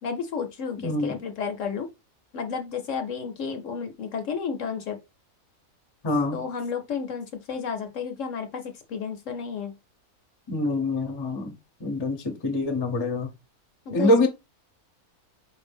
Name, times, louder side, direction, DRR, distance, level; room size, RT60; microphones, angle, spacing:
voice 1, 0.0-1.9 2.3-5.0 6.3-9.7 13.9-14.3, left 6 dB, 65° left, 0.9 m, -32 dB
voice 2, 0.8-1.1 6.0-6.4 10.5-11.5 11.8-13.3 13.9-14.3, left 1 dB, 25° left, 0.5 m, -25 dB
4.5 x 2.6 x 3.4 m
omnidirectional pair, 1.6 m